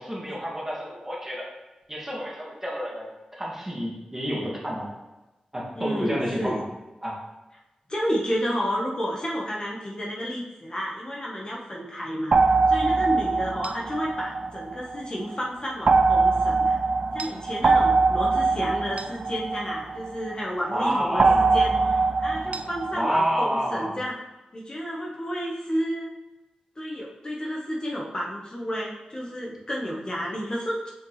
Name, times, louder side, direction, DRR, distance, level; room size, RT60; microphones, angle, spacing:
voice 1, 0.0-1.5 1.9-4.9 5.5-6.6 7.0-7.2 20.7-22.0 22.9-24.0, equal, 15° right, -4 dB, 2.2 m, -29 dB
voice 2, 5.8-6.6 7.9-16.8 17.1-24.2 24.5-26.1 26.8-30.9, equal, 35° left, -3 dB, 1.3 m, -31 dB
sound 1, 12.3-15.1 15.9-20.4 21.2-23.0, right 4 dB, 60° right, 0.4 m, -22 dB
6.9 x 5.2 x 3.3 m, 1.1 s
cardioid pair, 60°, 3 cm